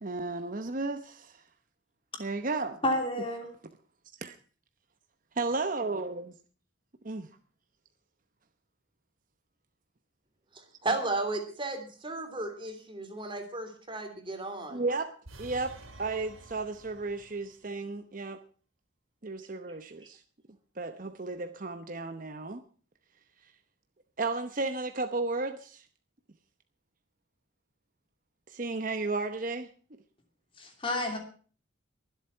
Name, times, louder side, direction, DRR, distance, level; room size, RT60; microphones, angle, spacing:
voice 1, 0.0-1.4 2.2-2.8 4.2-4.3 5.3-6.2 7.0-7.3 14.7-15.1 15.4-15.7 16.0-18.4 19.2-20.2 20.8-22.6 24.2-25.8 28.5-29.7, right 3 dB, 40° right, 0.9 m, -33 dB
voice 2, 2.8-3.5 30.6-31.2, left 1 dB, 25° left, 2.7 m, -30 dB
voice 3, 10.5-14.8, right 2 dB, 25° right, 3.1 m, -34 dB
sound 1, 15.2-17.5, right 2 dB, 85° right, 2.7 m, -50 dB
22.5 x 8.2 x 5.6 m
head